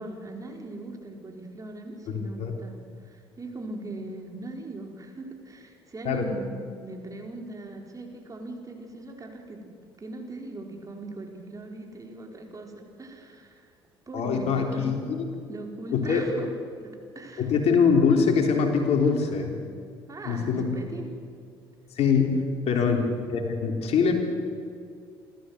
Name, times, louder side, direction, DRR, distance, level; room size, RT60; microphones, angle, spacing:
voice 1, 0.0-9.7 10.0-13.7 14.1-14.9 15.5-16.5 16.8-17.5 20.1-21.2 22.8-23.1, right 2 dB, 25° right, 2 dB, 4.6 m, -40 dB
voice 2, 2.1-2.5 6.0-6.3 14.1-15.2 15.9-16.3 17.4-19.6 20.2-20.8 22.0-22.4 22.7-24.2, left 5 dB, 55° left, 3 dB, 3.8 m, -23 dB
27.0 x 14.0 x 8.1 m, 2.3 s
hypercardioid pair, 55°, 13 cm